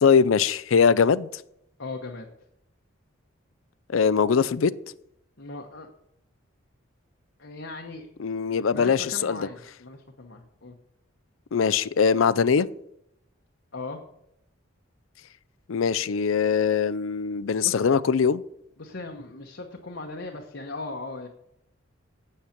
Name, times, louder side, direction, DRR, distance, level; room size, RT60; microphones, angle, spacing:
voice 1, 0.0-1.3 3.9-4.7 8.2-9.5 11.5-12.7 15.7-18.4, left 6 dB, 85° left, 0.5 m, -21 dB
voice 2, 1.8-2.3 5.4-5.9 7.4-8.1 8.4-10.8 13.7-14.0 17.6-17.9 18.8-21.3, left 3 dB, 65° left, 1.1 m, -38 dB
8.7 x 8.0 x 5.8 m
head